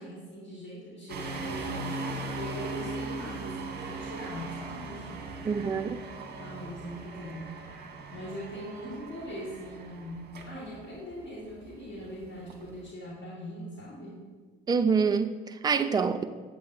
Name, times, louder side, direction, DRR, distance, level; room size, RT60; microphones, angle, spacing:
voice 1, 0.0-5.8 6.4-7.8 8.1-14.2, equal, 40° left, -7 dB, 2.1 m, -41 dB
sound 1, 1.1-12.9, right 3 dB, 35° right, 1.0 m, -39 dB
voice 2, 5.4-6.0 14.7-16.2, right 5 dB, 15° right, 9 dB, 0.3 m, -26 dB
8.1 x 7.7 x 2.6 m, 1.4 s
figure-of-eight pair, 55°, 29 cm